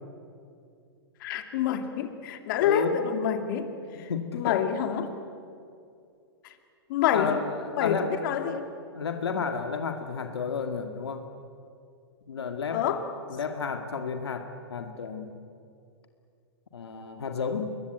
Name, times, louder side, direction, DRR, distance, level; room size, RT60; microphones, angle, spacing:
voice 1, 1.2-3.7 4.0-5.1 6.9-7.4 7.8-8.6 12.7-13.0, left 9 dB, 55° left, 6 dB, 2.5 m, -27 dB
voice 2, 2.6-3.0 4.1-4.6 7.1-8.6 8.9-11.3 12.3-12.9 13.3-15.4 16.7-17.8, left 5 dB, 85° left, 6 dB, 2.1 m, -32 dB
25.5 x 22.0 x 9.1 m, 2.5 s
hypercardioid pair, 130°, 13 cm